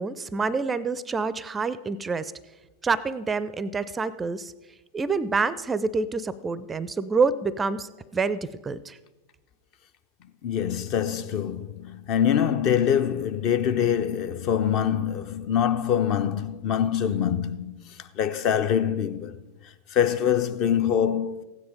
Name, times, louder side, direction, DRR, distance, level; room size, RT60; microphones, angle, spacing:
voice 1, 0.0-2.3 2.8-4.5 4.9-9.0, right 4 dB, 15° right, 0.5 m, -27 dB
voice 2, 10.4-17.8 18.2-19.4 19.9-21.4, left 9 dB, 40° left, 0.7 m, -24 dB
15.5 x 9.5 x 5.0 m
figure-of-eight pair, 90°, 0 cm